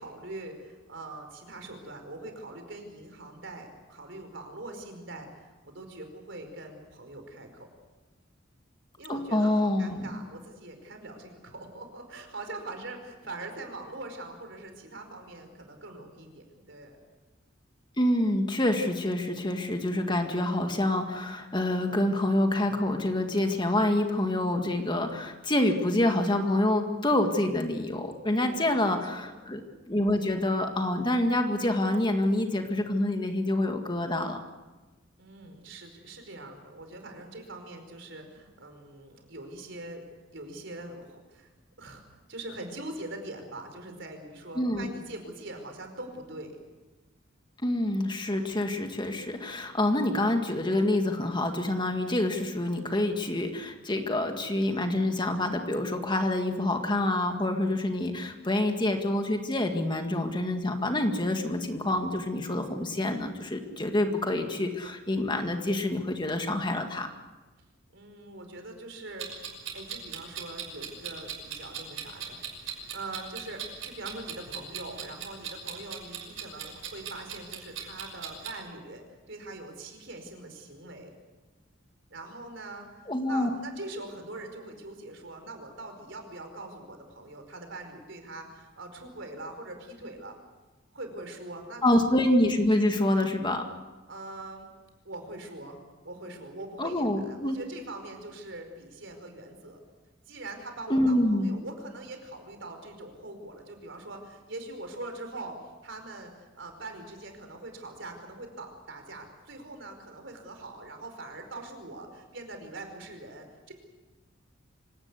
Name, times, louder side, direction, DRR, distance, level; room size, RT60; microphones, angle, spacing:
voice 1, 0.0-7.7 9.0-17.0 28.4-28.8 29.1-29.3 35.2-40.0 40.3-41.5 41.8-46.6 61.1-61.3 67.9-69.3 69.7-81.1 82.1-90.3 90.9-91.8 94.1-94.7 95.0-95.8 96.0-99.8 100.3-105.6 105.8-113.7, right 2 dB, 65° right, 5 dB, 4.9 m, -43 dB
voice 2, 9.1-10.2 18.0-29.6 29.9-34.4 44.6-44.9 47.6-67.1 83.1-83.5 91.8-93.7 96.8-97.6 100.9-101.5, left 1 dB, 25° left, 5 dB, 2.0 m, -27 dB
Clock, 69.2-78.5, right 8 dB, 85° right, 6.0 m, -39 dB
25.5 x 17.5 x 8.3 m, 1.2 s
head